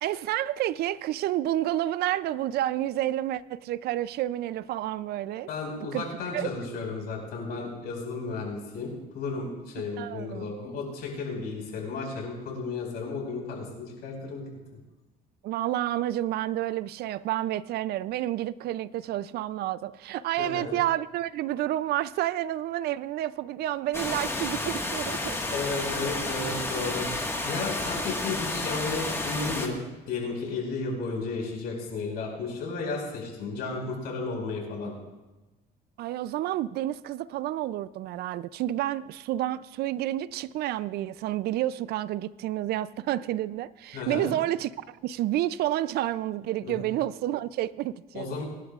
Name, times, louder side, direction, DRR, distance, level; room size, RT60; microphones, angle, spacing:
voice 1, 0.0-5.5 5.9-6.1 6.3-6.5 10.0-10.5 15.4-25.4 36.0-48.3, right 13 dB, 70° right, 0.4 m, -30 dB
voice 2, 5.5-14.4 20.4-20.7 25.5-27.1 27.4-29.8 30.1-34.9 43.9-44.3 46.6-46.8 48.1-48.4, left 4 dB, 70° left, 5.0 m, -33 dB
sound 1, 23.9-29.7, left 2 dB, 15° left, 1.6 m, -31 dB
25.0 x 11.5 x 2.4 m
cardioid pair, 110°, 17 cm